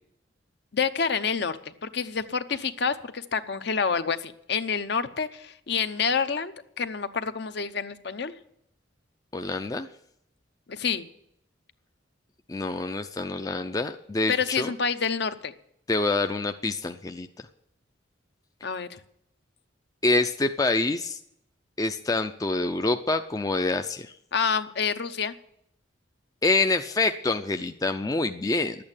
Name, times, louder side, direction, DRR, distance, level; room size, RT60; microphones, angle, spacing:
voice 1, 0.7-8.3 10.7-11.1 14.3-15.5 18.6-19.0 24.3-25.3, left 6 dB, 55° left, 11 dB, 0.8 m, -28 dB
voice 2, 9.3-9.9 12.5-14.7 15.9-17.3 20.0-21.2 21.8-24.1 26.4-28.8, left 3 dB, 20° left, 7 dB, 0.4 m, -26 dB
11.5 x 8.6 x 8.9 m, 0.74 s
head